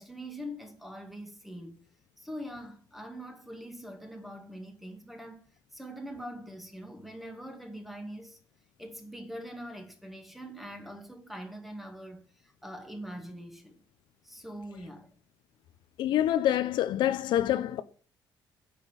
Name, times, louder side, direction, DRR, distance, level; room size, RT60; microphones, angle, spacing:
voice 1, 0.0-1.8 2.2-5.4 5.7-8.4 8.8-12.2 12.6-13.8 14.2-15.1, equal, ahead, 2.0 m, -43 dB
voice 2, 16.0-17.8, left 12 dB, 65° left, 0.9 m, -26 dB
9.9 x 6.8 x 8.8 m
cardioid pair, 155°, 8 cm